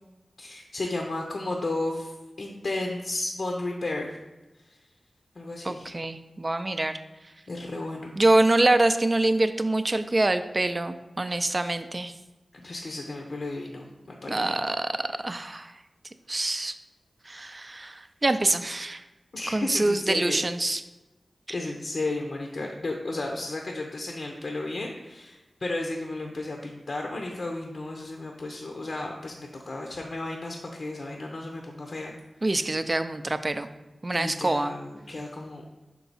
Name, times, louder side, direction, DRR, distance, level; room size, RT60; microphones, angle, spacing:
voice 1, 0.4-2.1 2.4-4.2 5.4-6.0 7.5-8.1 11.6-11.7 12.5-14.4 19.3-20.4 21.5-32.1 34.1-35.6, left 2 dB, 65° left, 1 dB, 0.7 m, -33 dB
voice 2, 5.6-7.0 8.2-12.1 14.3-15.7 16.3-16.7 17.3-19.0 19.5-20.8 32.4-33.7 34.0-34.7, right 2 dB, 35° right, 10 dB, 0.4 m, -25 dB
5.8 x 4.6 x 4.0 m, 1.1 s
wide cardioid pair, 60°, 0 cm